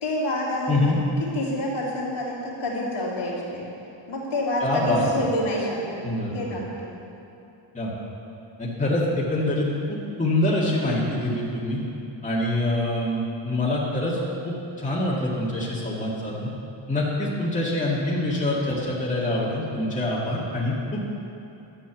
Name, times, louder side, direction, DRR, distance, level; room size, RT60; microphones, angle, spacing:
voice 1, 0.0-0.9 1.3-3.6 4.1-6.0 6.3-6.9, left 1 dB, 65° left, -11 dB, 2.9 m, -27 dB
voice 2, 4.6-5.0 6.0-6.6 7.7-7.9 8.6-11.8 12.2-14.2 14.4-16.5 16.9-21.0, left 1 dB, 15° left, -6 dB, 2.1 m, -25 dB
12.0 x 8.2 x 7.3 m, 2.9 s
wide cardioid pair, 150°, 48 cm